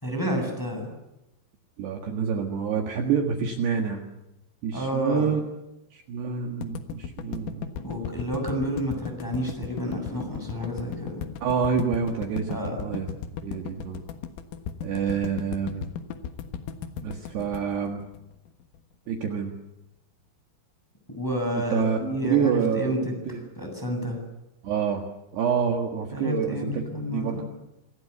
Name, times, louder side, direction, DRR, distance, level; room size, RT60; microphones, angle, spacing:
voice 1, 0.0-0.9 4.7-5.3 7.8-11.3 12.5-12.8 21.1-23.1 23.6-24.2 26.1-27.4, equal, 5° left, 2 dB, 6.9 m, -30 dB
voice 2, 1.8-4.0 4.6-5.4 5.9-7.7 11.4-13.1 13.4-14.0 14.8-15.9 17.0-18.1 19.1-19.5 21.5-23.5 24.6-25.0 25.3-26.8 27.1-27.4, right 7 dB, 65° right, 3 dB, 3.5 m, -27 dB
sound 1, 6.6-18.8, left 8 dB, 80° left, 4.1 m, -36 dB
27.0 x 20.5 x 8.3 m, 0.90 s
omnidirectional pair, 5.8 m